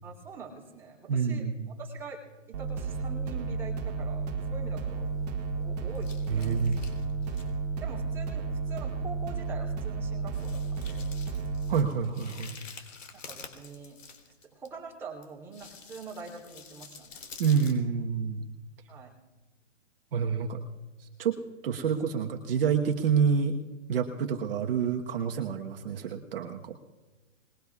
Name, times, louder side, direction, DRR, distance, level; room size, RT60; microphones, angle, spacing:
voice 1, 0.0-2.2 2.5-5.1 5.6-6.7 7.8-11.1 13.1-14.0 14.5-17.2 18.9-19.1, right 4 dB, 5° right, -3 dB, 3.3 m, -44 dB
voice 2, 1.1-1.7 6.3-6.8 11.7-12.6 17.4-18.5 20.1-20.6 21.0-23.6 23.9-26.8, right 6 dB, 50° right, 3 dB, 1.3 m, -28 dB
sound 1, 2.5-11.8, right 4 dB, 35° right, 1.9 m, -32 dB
sound 2, 4.9-5.6 6.0-7.5 7.9-8.0 8.7-8.8 9.0-9.2 9.6-9.7 10.3-14.7 15.2-17.7, left 5 dB, 75° left, 3.7 m, -49 dB
25.5 x 21.0 x 2.4 m, 1.2 s
hypercardioid pair, 160°, 38 cm